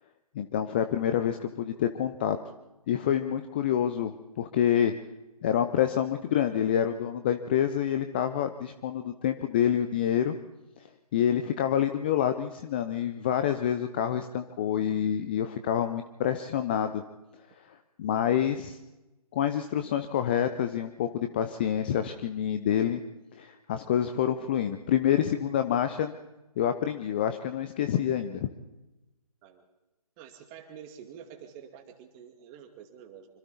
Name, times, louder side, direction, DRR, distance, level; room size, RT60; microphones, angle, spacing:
voice 1, 0.3-2.4 2.9-4.9 5.4-10.4 11.1-17.0 17.6-18.8 19.3-23.0 23.3-26.1 26.6-28.5, left 9 dB, 15° left, 9 dB, 0.6 m, -27 dB
voice 2, 30.2-33.3, right 8 dB, 15° right, 6 dB, 2.2 m, -48 dB
26.0 x 25.5 x 4.2 m, 1.0 s
figure-of-eight pair, 150°, 19 cm